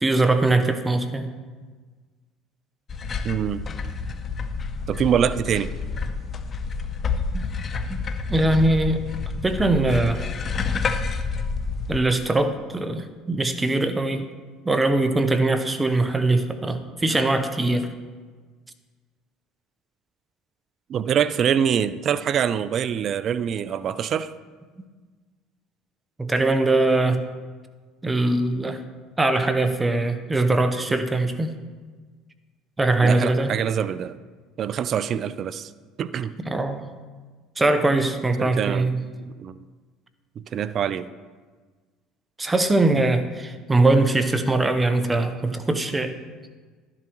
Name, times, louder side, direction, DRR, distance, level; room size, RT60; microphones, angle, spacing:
voice 1, 0.0-1.3 7.3-7.4 7.9-8.0 8.3-9.0 9.4-10.2 11.9-14.3 14.6-17.9 26.2-27.2 28.0-28.8 29.2-31.5 32.8-33.6 36.4-36.9 37.6-39.0 42.4-46.2, right 2 dB, 15° right, 9 dB, 0.9 m, -21 dB
sound 1, 2.9-12.0, left 4 dB, 35° left, 0.7 m, -29 dB
voice 2, 3.2-3.7 4.9-5.8 20.9-24.3 33.0-34.2 34.6-35.7 36.0-36.4 38.4-38.9 39.2-39.6 40.5-41.1, right 8 dB, 45° right, 15 dB, 0.4 m, -24 dB
12.0 x 10.5 x 3.1 m, 1.4 s
supercardioid pair, 100°, 0 cm